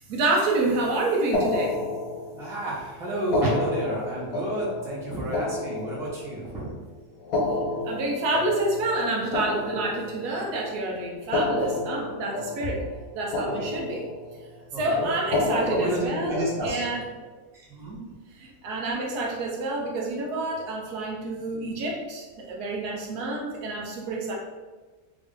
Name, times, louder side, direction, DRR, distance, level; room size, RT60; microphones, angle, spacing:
voice 1, 0.0-1.8 7.8-12.8 13.1-14.1 14.8-17.0 18.4-24.3, right 2 dB, 80° right, -1 dB, 1.3 m, -28 dB
sound 1, 1.3-2.6 3.2-6.5 7.2-10.5 11.2-13.1 13.3-14.4 15.2-17.0, left 2 dB, 75° left, 1.4 m, -30 dB
voice 2, 2.4-6.7 13.6-13.7 14.7-15.1 15.7-16.8 17.5-18.0, right 1 dB, 5° right, -6 dB, 0.5 m, -30 dB
3.4 x 2.6 x 3.6 m, 1.3 s
omnidirectional pair, 1.6 m